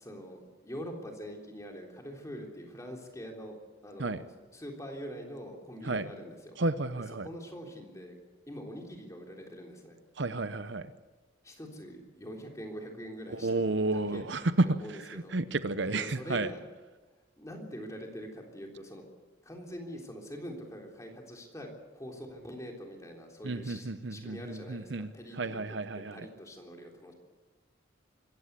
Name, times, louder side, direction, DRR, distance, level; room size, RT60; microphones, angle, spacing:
voice 1, 0.0-3.6 3.8-6.6 7.2-8.2 8.5-10.0 11.4-14.3 14.6-15.4 15.9-16.6 17.4-19.1 19.4-25.6 25.9-27.1, equal, 15° left, 1 dB, 3.5 m, -44 dB
voice 2, 6.6-7.3 10.2-10.9 13.3-16.5 23.4-26.3, right 2 dB, 60° right, 12 dB, 0.8 m, -31 dB
25.0 x 15.0 x 8.2 m, 1.2 s
head